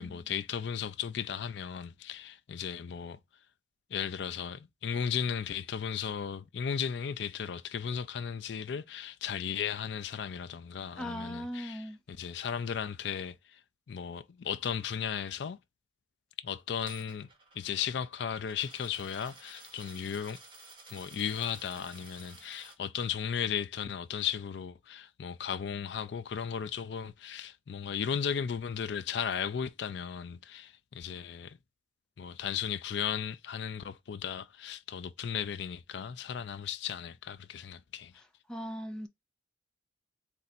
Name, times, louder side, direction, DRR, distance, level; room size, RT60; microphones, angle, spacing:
voice 1, 0.0-3.2 3.9-13.6 13.9-15.6 16.4-17.3 17.5-20.4 20.9-31.6 32.2-38.1, left 7 dB, 65° left, 0.4 m, -35 dB
voice 2, 11.0-12.0 38.5-39.1, equal, 5° left, 0.7 m, -38 dB
Coin (dropping), 16.8-22.8, right 3 dB, 25° right, 1.3 m, -53 dB
4.0 x 2.5 x 4.2 m
head